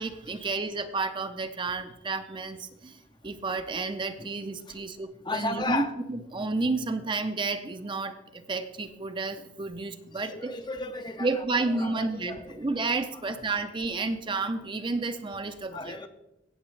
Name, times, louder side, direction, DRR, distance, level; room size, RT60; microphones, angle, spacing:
voice 1, 0.0-10.5 11.2-16.0, right 3 dB, 25° right, 9 dB, 0.6 m, -31 dB
voice 2, 5.2-5.9 10.3-11.3 11.8-12.4 15.7-16.1, left 2 dB, 25° left, 9 dB, 0.6 m, -33 dB
17.0 x 7.1 x 3.2 m, 0.89 s
head